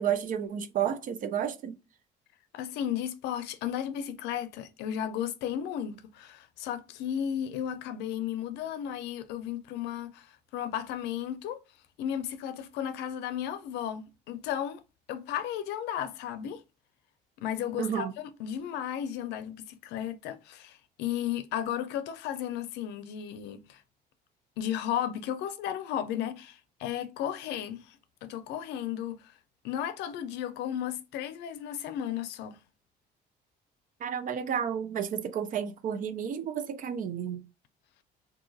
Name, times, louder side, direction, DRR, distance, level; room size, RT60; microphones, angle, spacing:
voice 1, 0.0-1.8 17.8-18.1 34.0-37.4, right 8 dB, 55° right, 0.5 m, -31 dB
voice 2, 2.5-11.6 12.0-14.8 15.1-16.6 17.4-23.8 24.6-29.3 29.6-32.6, left 10 dB, 85° left, 0.5 m, -34 dB
2.7 x 2.3 x 3.9 m
cardioid pair, 110°, 17 cm